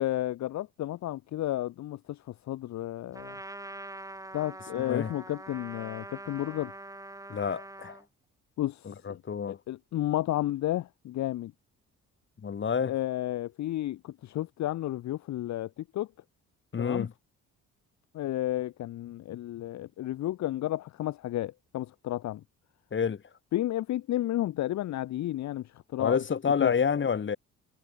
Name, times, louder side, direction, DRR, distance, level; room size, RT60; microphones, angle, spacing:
voice 1, 0.0-3.3 4.3-6.7 8.6-9.2 9.5-11.5 12.8-16.1 16.8-17.1 18.1-22.4 23.5-26.2 26.6-26.7, left 14 dB, 65° left, 0.8 m, -32 dB
Trumpet, 3.1-8.0, right 1 dB, 10° right, 5.5 m, -44 dB
voice 2, 4.8-5.1 7.3-8.0 8.9-9.6 12.4-12.9 16.7-17.1 22.9-23.2 26.0-27.4, left 6 dB, 40° left, 2.3 m, -28 dB
cardioid pair, 90°, 30 cm